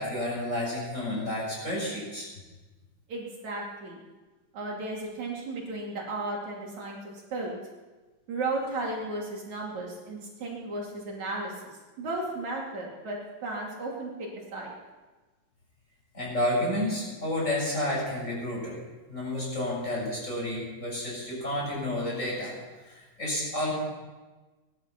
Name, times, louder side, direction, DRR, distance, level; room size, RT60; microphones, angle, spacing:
voice 1, 0.0-2.3 16.1-18.8 19.1-22.5 22.8-23.7, left 1 dB, 20° left, -4 dB, 6.8 m, -30 dB
voice 2, 3.1-4.0 4.5-7.0 7.3-7.5 8.3-14.7, right 2 dB, 60° right, -3 dB, 3.8 m, -34 dB
19.5 x 12.0 x 5.9 m, 1.2 s
omnidirectional pair, 3.9 m